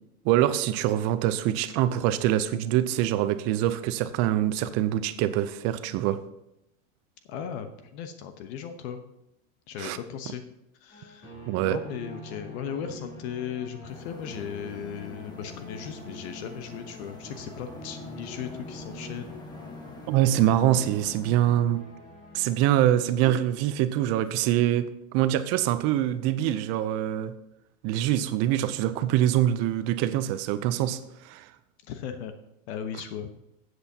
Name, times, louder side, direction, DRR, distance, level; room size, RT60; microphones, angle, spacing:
voice 1, 0.2-6.2 9.8-10.0 11.5-11.8 20.1-21.8 22.3-24.9 25.1-27.3 27.8-31.5, right 12 dB, 40° right, 13 dB, 0.6 m, -24 dB
voice 2, 7.3-9.0 9.7-10.4 10.8-11.3 11.6-19.3 31.9-32.3 32.7-33.3, left 8 dB, 55° left, 8 dB, 1.0 m, -37 dB
sound 1, 10.9-23.3, equal, 35° left, 4.1 m, -45 dB
sound 2, 13.9-21.6, left 2 dB, 10° left, 1.2 m, -46 dB
13.0 x 7.9 x 2.8 m, 0.84 s
supercardioid pair, 130°, 40 cm